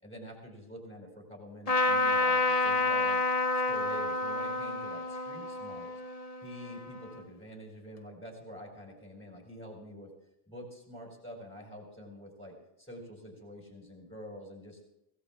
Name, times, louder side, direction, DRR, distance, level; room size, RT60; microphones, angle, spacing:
voice 1, 0.0-3.2 3.5-5.9 6.4-10.1 10.5-14.8, equal, 5° left, -2 dB, 4.2 m, -47 dB
Trumpet, 1.7-7.2, left 2 dB, 35° left, 1.0 m, -29 dB
25.0 x 17.5 x 2.4 m, 0.84 s
omnidirectional pair, 1.1 m